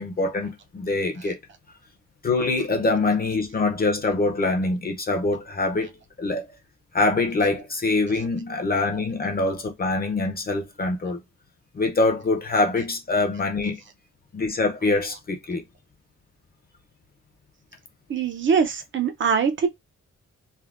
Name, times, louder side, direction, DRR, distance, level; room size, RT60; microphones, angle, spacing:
voice 1, 0.0-1.4 2.2-5.9 6.2-6.5 6.9-11.2 11.7-13.8 14.3-15.6, left 3 dB, 30° left, 0.5 m, -24 dB
voice 2, 18.1-19.7, right 6 dB, 40° right, 0.5 m, -22 dB
3.3 x 2.1 x 2.4 m
wide cardioid pair, 165°, 29 cm